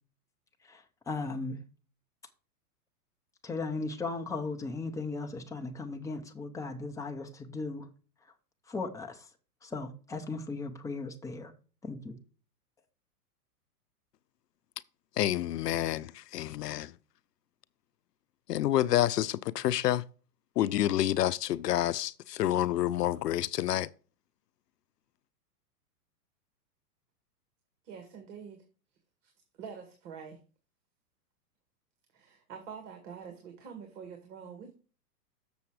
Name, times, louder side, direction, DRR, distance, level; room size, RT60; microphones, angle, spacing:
voice 1, 0.6-1.6 3.4-7.9 8.7-9.3 9.6-11.5 11.8-12.2, left 3 dB, 5° left, 0.7 m, -37 dB
voice 2, 15.2-16.9 18.5-20.0 20.6-23.9, left 13 dB, 80° left, 0.6 m, -28 dB
voice 3, 27.8-28.6 29.2-29.3 29.6-30.4 32.1-34.7, right 6 dB, 50° right, 2.0 m, -46 dB
7.0 x 7.0 x 4.7 m
hypercardioid pair, 135°, 47 cm